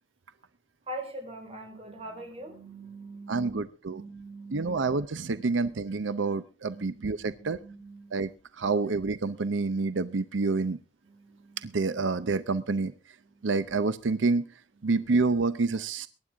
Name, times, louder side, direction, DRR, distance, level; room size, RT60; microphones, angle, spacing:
voice 1, 0.9-3.6 3.9-4.8 5.3-5.5 6.7-8.7 11.0-12.0 13.2-13.5, right 2 dB, 30° right, 3 dB, 4.8 m, -44 dB
voice 2, 3.3-4.0 4.5-7.6 8.1-8.3 8.6-10.8 11.6-12.9 13.4-14.5 14.8-16.1, right 3 dB, 90° right, 14 dB, 0.7 m, -28 dB
23.0 x 10.5 x 3.5 m, 0.36 s
head